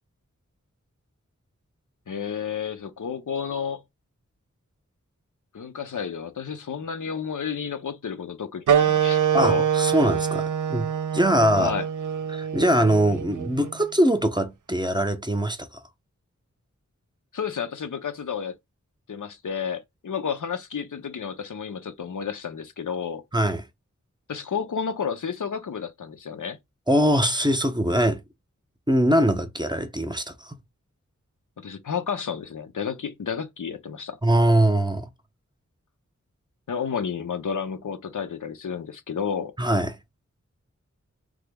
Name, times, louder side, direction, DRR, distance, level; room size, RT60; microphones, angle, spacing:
voice 1, 2.1-3.8 5.5-9.6 11.5-11.8 17.3-18.5 19.1-23.2 24.3-26.6 31.6-34.2 36.7-39.5, left 7 dB, 90° left, 0.6 m, -31 dB
sound 1, 8.7-13.8, right 8 dB, 85° right, 0.5 m, -24 dB
voice 2, 9.3-10.9 11.1-11.7 12.3-15.8 23.3-23.6 26.9-28.2 28.9-30.6 34.2-35.1 39.6-40.0, right 1 dB, 15° right, 0.6 m, -22 dB
3.4 x 2.0 x 3.3 m
wide cardioid pair, 65°, 30 cm